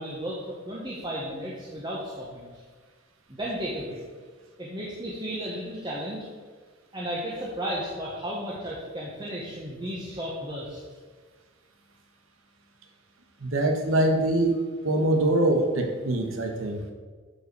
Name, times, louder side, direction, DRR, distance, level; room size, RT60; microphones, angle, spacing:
voice 1, 0.0-2.6 3.3-4.0 4.6-6.3 6.9-10.8, equal, 20° right, -5 dB, 1.4 m, -34 dB
voice 2, 13.4-14.5 14.8-16.9, right 1 dB, 90° right, 4 dB, 1.4 m, -24 dB
8.8 x 5.6 x 6.9 m, 1.4 s
head